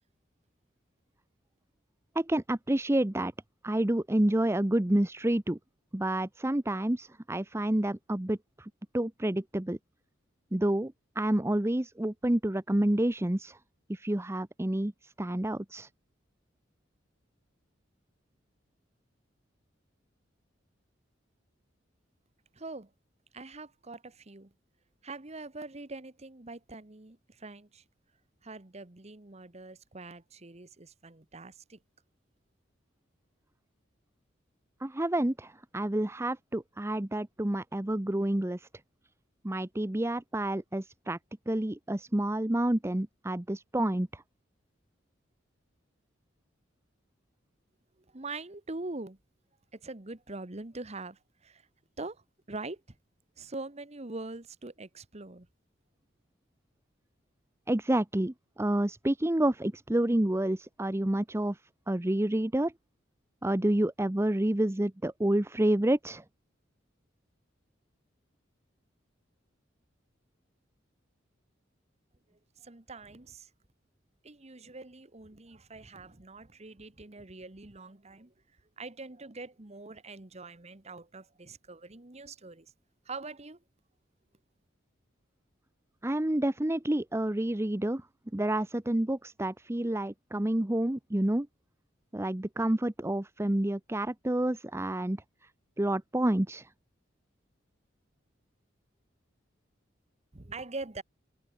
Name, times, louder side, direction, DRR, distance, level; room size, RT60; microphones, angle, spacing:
voice 1, 2.1-3.3 3.6-5.6 5.9-9.8 10.5-13.6 13.9-15.9 34.8-38.7 39.4-41.2 41.5-44.2 57.7-61.6 61.9-62.7 63.4-66.2 86.0-88.1 88.3-91.5 92.1-95.2 95.8-96.7, right 1 dB, 15° right, 0.7 m, -29 dB
voice 2, 22.5-22.9 23.3-24.5 25.0-27.8 28.4-31.8 48.1-49.2 49.7-51.6 52.0-52.2 52.5-52.8 53.4-55.5 72.6-73.5 74.2-78.3 78.8-82.7 83.1-83.6 100.3-101.0, right 3 dB, 35° right, 1.3 m, -43 dB
head